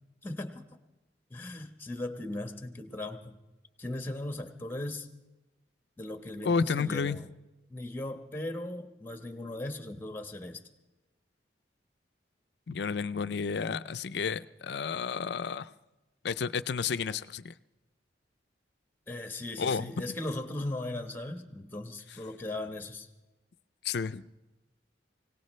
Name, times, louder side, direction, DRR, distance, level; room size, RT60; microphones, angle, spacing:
voice 1, 0.2-0.6 1.3-3.4 3.8-5.1 6.0-7.3 7.7-10.7 19.1-23.1, left 1 dB, 10° left, 6 dB, 1.2 m, -38 dB
voice 2, 6.4-7.2 12.7-15.7 16.2-17.5 19.6-19.9 23.8-24.2, left 5 dB, 65° left, 14 dB, 0.5 m, -31 dB
25.0 x 17.5 x 3.2 m, 1.1 s
head